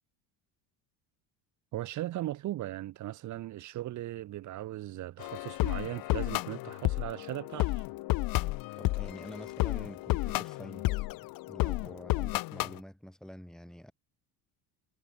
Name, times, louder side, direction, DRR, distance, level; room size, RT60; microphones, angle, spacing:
voice 1, 1.7-7.8, right 14 dB, 55° right, 2.0 m, -38 dB
sound 1, 5.2-12.8, left 20 dB, 70° left, 1.7 m, -31 dB
voice 2, 8.8-11.1 11.5-13.9, equal, ahead, 5.4 m, -47 dB
cardioid pair, 150°, 35 cm